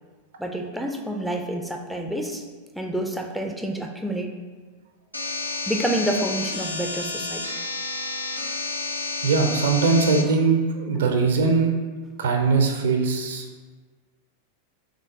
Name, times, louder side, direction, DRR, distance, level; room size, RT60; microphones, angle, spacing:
voice 1, 0.4-2.4 2.7-4.3 5.7-7.4 11.0-11.1, right 1 dB, ahead, 2 dB, 0.3 m, -28 dB
sound 1, 5.1-10.2, left 3 dB, 80° left, 0.4 m, -30 dB
voice 2, 9.2-11.7 12.2-13.5, right 4 dB, 65° right, 4 dB, 0.4 m, -21 dB
3.7 x 3.4 x 2.6 m, 1.4 s
figure-of-eight pair, 90°, 0 cm